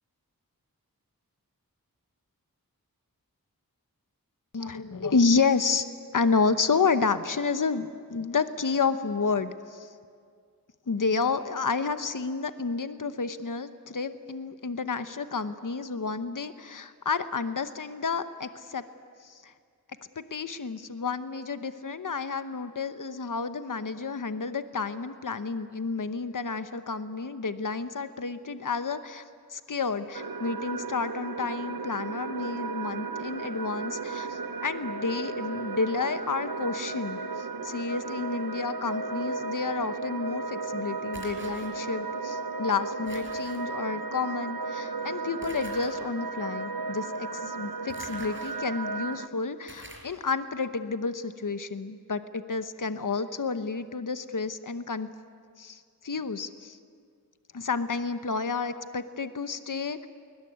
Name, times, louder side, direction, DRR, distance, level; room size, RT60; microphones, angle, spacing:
voice 1, 4.5-5.9 6.1-9.9 10.9-18.8 19.2-19.5 20.2-29.2 29.5-55.1 55.6-56.8 57.5-60.1, left 4 dB, 60° left, 10 dB, 0.9 m, -30 dB
sound 1, 30.1-49.3, right 4 dB, 70° right, 1.0 m, -34 dB
sound 2, 41.1-41.7 43.1-43.6 45.4-45.9 47.9-48.5 49.1-49.2 49.7-50.1, right 1 dB, 35° right, 5.4 m, -46 dB
21.0 x 20.5 x 9.4 m, 2.1 s
wide cardioid pair, 50°, 36 cm